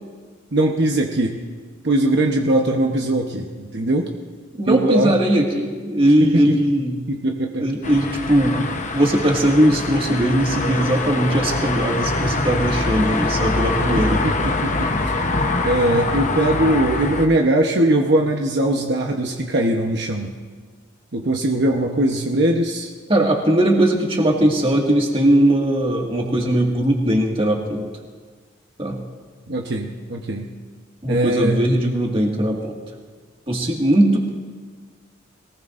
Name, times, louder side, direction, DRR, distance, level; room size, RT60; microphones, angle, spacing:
voice 1, 0.5-1.4 1.8-4.1 4.7-5.1 6.2-6.6 7.1-7.7 13.9-14.9 15.6-20.3 21.1-22.9 29.5-30.5 31.1-31.6, right 1 dB, 60° right, 1 dB, 1.0 m, -20 dB
voice 2, 4.5-7.0 7.6-8.6 8.9-14.2 23.1-27.8 28.8-29.0 31.0-32.8 33.5-34.3, right 1 dB, 30° right, 0 dB, 1.9 m, -19 dB
sound 1, 7.8-17.3, left 2 dB, 40° left, 0.9 m, -24 dB
22.0 x 19.0 x 2.6 m, 1.5 s
head